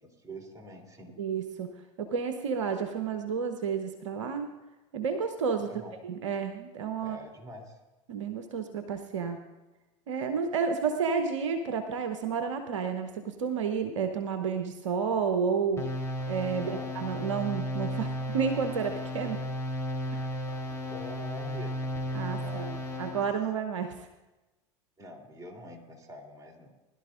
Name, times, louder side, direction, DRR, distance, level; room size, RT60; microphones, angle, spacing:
voice 1, 0.0-1.2 5.6-6.0 7.0-7.8 16.5-16.9 20.9-21.8 22.4-23.2 25.0-26.7, right 1 dB, 20° right, 1 dB, 3.2 m, -45 dB
voice 2, 1.2-1.7 2.0-4.5 4.9-5.7 6.0-7.2 8.1-9.4 10.1-15.9 16.3-19.4 20.1-20.3 22.1-22.7 23.0-24.1, right 6 dB, 75° right, 7 dB, 0.9 m, -31 dB
sound 1, 15.8-23.3, equal, 15° left, 3.3 m, -34 dB
21.0 x 12.0 x 2.5 m, 1.1 s
figure-of-eight pair, 80°, 16 cm